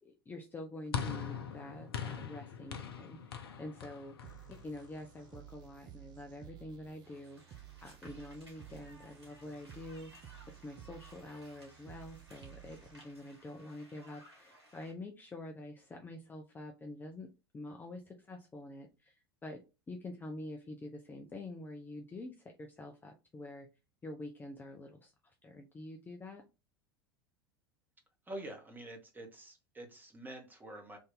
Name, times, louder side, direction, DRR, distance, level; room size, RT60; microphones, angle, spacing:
voice 1, 0.0-10.1 10.6-19.1 19.4-19.6 19.9-23.7 24.0-25.1 25.4-26.4, left 2 dB, 15° left, 2 dB, 0.6 m, -47 dB
sound 1, 0.9-5.4, left 7 dB, 70° left, 0.6 m, -42 dB
sound 2, 4.2-13.2, right 12 dB, 35° right, 0.6 m, -54 dB
sound 3, 7.0-14.9, equal, 85° right, 1.9 m, -60 dB
voice 2, 28.3-31.0, right 1 dB, 15° right, 3 dB, 1.2 m, -47 dB
3.4 x 2.6 x 3.8 m, 0.28 s
figure-of-eight pair, 80°, 13 cm